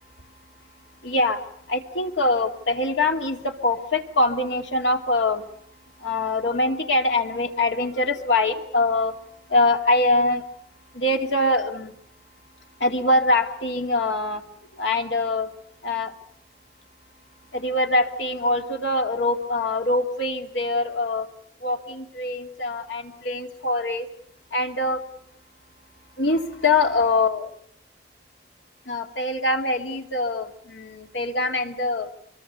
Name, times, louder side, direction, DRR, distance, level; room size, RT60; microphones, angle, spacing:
voice 1, 1.0-1.4 1.7-5.4 6.0-9.2 9.5-10.4 10.9-11.9 12.8-14.4 14.7-15.5 15.8-16.1 17.5-21.3 21.6-24.1 24.5-25.0 26.2-27.5 28.9-32.1, left 2 dB, 90° left, 4 dB, 2.5 m, -23 dB
24.5 x 23.0 x 7.0 m, 0.69 s
head